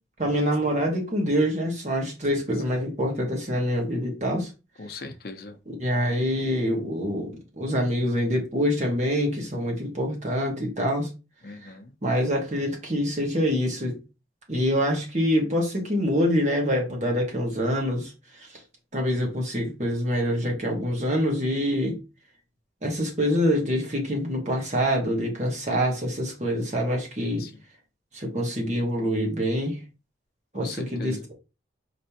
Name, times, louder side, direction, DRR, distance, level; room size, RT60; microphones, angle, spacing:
voice 1, 0.2-4.5 5.7-11.1 12.0-14.0 14.5-18.1 18.4-18.5 18.9-22.0 22.8-27.4 28.1-29.8 30.5-31.3, equal, 40° right, 1.6 m, -25 dB
voice 2, 4.8-5.6 11.4-11.9 27.2-27.5 30.5-31.3, left 3 dB, 55° left, 0.8 m, -39 dB
5.1 x 3.3 x 2.9 m
head